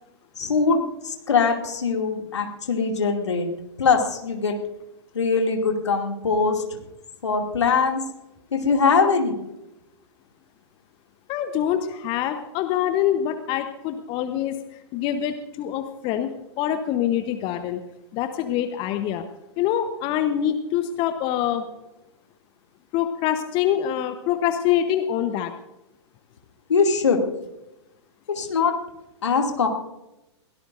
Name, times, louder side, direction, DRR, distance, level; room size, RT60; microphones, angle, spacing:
voice 1, 0.4-0.8 1.0-3.5 3.8-4.6 5.1-6.8 7.2-8.0 8.5-9.4 26.7-27.2 28.3-28.7 29.2-29.7, left 5 dB, 70° left, 3 dB, 2.6 m, -22 dB
voice 2, 11.3-17.8 18.1-19.2 19.6-21.6 22.9-25.5, left 10 dB, 35° left, 8 dB, 1.0 m, -25 dB
22.5 x 17.0 x 2.6 m, 0.95 s
figure-of-eight pair, 105°, 15 cm